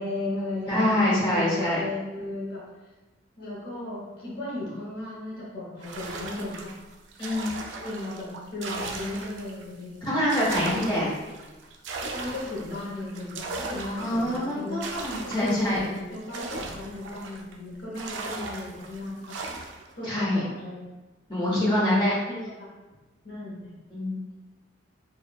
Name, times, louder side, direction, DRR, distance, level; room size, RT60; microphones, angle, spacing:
voice 1, 0.0-2.6 3.4-6.7 7.8-10.2 12.0-14.8 15.4-19.4 20.0-20.9 21.6-22.0 22.3-22.7 23.2-23.7, left 2 dB, 60° left, -7 dB, 0.7 m, -35 dB
voice 2, 0.7-1.8 7.2-7.5 10.0-11.1 14.0-15.8 20.0-20.4 21.3-22.1 23.9-24.1, left 1 dB, 25° left, -9 dB, 1.1 m, -25 dB
sound 1, 5.8-9.7 10.0-17.6 18.0-19.9, right 3 dB, 85° right, 0.3 m, -38 dB
3.2 x 2.4 x 2.3 m, 1.2 s
head